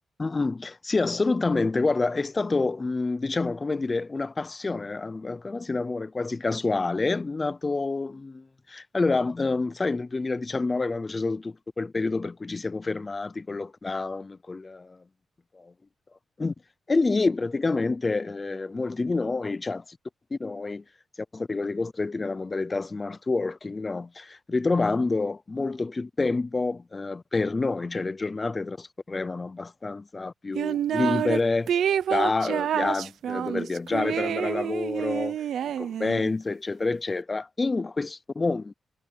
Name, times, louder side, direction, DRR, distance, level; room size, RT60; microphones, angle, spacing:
voice 1, 0.2-15.0 15.5-15.6 16.4-16.5 16.9-20.0 20.3-20.8 21.3-31.7 32.1-35.4 35.6-38.7, left 3 dB, 20° left, 0.4 m, -28 dB
sound 1, 30.6-31.4 31.7-36.3, right 9 dB, 80° right, 0.5 m, -28 dB
wide cardioid pair, 160°, 0 cm